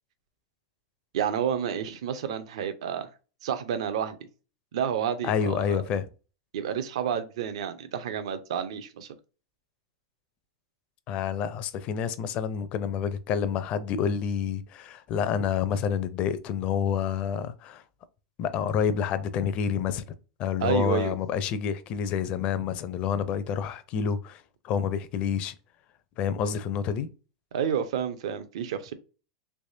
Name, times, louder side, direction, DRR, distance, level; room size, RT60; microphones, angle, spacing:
voice 1, 1.1-3.1 3.4-4.2 4.7-5.8 6.5-9.1 20.6-21.1 27.5-28.9, right 8 dB, 75° right, 0.6 m, -30 dB
voice 2, 5.2-6.1 11.1-17.8 18.4-20.0 20.4-25.6 26.2-27.1, left 7 dB, 40° left, 0.5 m, -28 dB
3.4 x 3.1 x 2.7 m
supercardioid pair, 145°, 3 cm